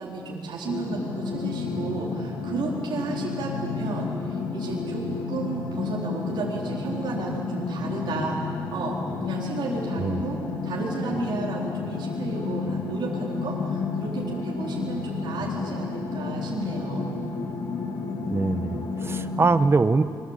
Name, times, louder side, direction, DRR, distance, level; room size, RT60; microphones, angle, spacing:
voice 1, 0.0-5.0 5.3-8.4 8.7-9.0 9.2-17.5, right 4 dB, 85° right, -4 dB, 4.2 m, -33 dB
sound 1, 0.6-19.5, left 4 dB, 80° left, 3.3 m, -31 dB
voice 2, 18.3-20.0, right 3 dB, 30° right, 11 dB, 1.2 m, -23 dB
26.5 x 23.5 x 8.3 m, 2.3 s
cardioid pair, 95°, 8 cm